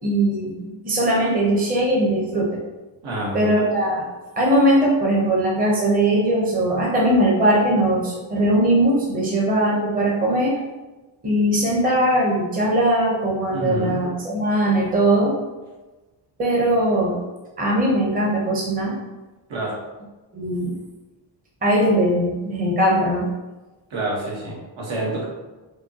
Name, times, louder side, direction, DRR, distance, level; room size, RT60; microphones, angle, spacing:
voice 1, 0.0-2.5 3.3-4.0 4.4-10.5 11.2-15.3 16.4-17.2 17.6-18.9 20.3-20.7 21.6-23.3, right 1 dB, 20° right, -4 dB, 0.7 m, -20 dB
voice 2, 3.0-3.5 13.5-14.0 19.5-19.8 23.9-25.3, right 1 dB, 80° right, -4 dB, 1.3 m, -27 dB
5.0 x 2.1 x 2.8 m, 1.1 s
cardioid pair, 175°, 46 cm